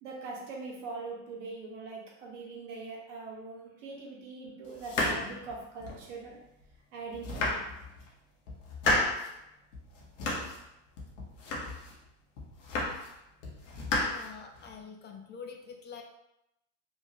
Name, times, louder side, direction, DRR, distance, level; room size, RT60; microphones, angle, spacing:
voice 1, 0.0-6.4 6.9-7.7, right 3 dB, 75° right, -2 dB, 1.0 m, -42 dB
sound 1, 4.8-6.1 6.6-6.7 7.1-8.1 8.5-9.3 9.7-10.6 11.0-12.0 12.4-13.2 13.4-14.7, left 2 dB, 80° left, 0.8 m, -32 dB
voice 2, 14.1-16.0, left 6 dB, 30° left, 3 dB, 0.4 m, -45 dB
3.0 x 2.2 x 2.8 m, 0.83 s
hypercardioid pair, 75°, 37 cm